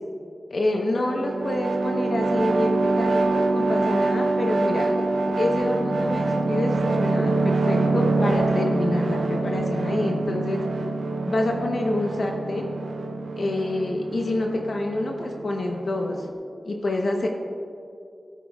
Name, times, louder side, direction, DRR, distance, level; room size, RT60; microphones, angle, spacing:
voice 1, 0.5-5.0 5.4-10.6 11.3-12.7 13.4-16.3 16.6-17.3, left 2 dB, 60° left, 1 dB, 0.9 m, -27 dB
sound 1, 0.9-16.3, right 3 dB, 75° right, 0.6 m, -25 dB
15.0 x 8.3 x 2.4 m, 2.4 s
wide cardioid pair, 120°, 0 cm